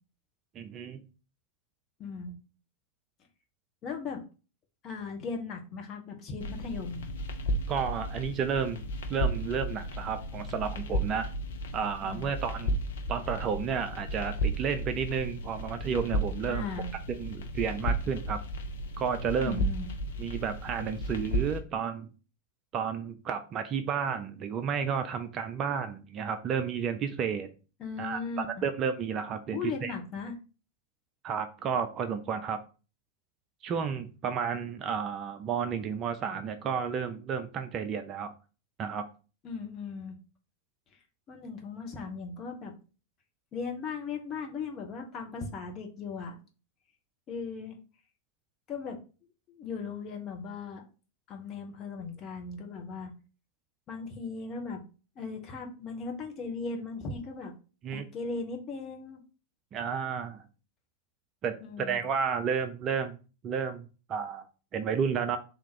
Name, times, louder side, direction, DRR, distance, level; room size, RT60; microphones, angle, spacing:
voice 1, 0.5-1.0 7.7-11.3 11.7-12.8 13.1-16.7 17.1-18.4 19.0-19.6 20.2-22.1 22.7-27.5 28.0-28.2 28.6-29.9 31.2-32.6 33.6-38.3 38.8-39.1 57.8-58.1 59.7-60.4 61.4-63.2 63.4-64.5 64.7-65.4, right 6 dB, 30° right, 8 dB, 0.4 m, -32 dB
voice 2, 2.0-2.4 3.8-4.2 4.8-7.0 12.0-12.3 16.5-16.9 19.4-19.9 27.8-28.7 29.5-30.3 39.4-40.2 41.3-42.7 43.5-46.4 47.3-47.8 48.7-49.0 49.5-50.8 51.3-53.1 53.9-54.8 55.2-57.5 57.9-59.2 61.6-62.0, left 4 dB, 30° left, 2 dB, 1.0 m, -37 dB
sound 1, 6.4-21.6, equal, 60° left, 0.7 m, -34 dB
3.6 x 2.8 x 4.5 m, 0.35 s
figure-of-eight pair, 90°, 0 cm